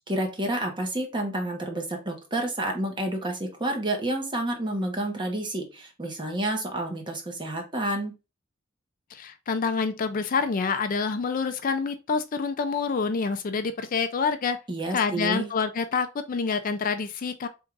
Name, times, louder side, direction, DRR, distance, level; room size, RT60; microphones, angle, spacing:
voice 1, 0.1-8.1 14.7-15.5, right 1 dB, 20° right, 1.0 m, -29 dB
voice 2, 9.1-14.6 14.9-17.5, left 5 dB, 40° left, 0.4 m, -27 dB
3.6 x 2.5 x 4.5 m
head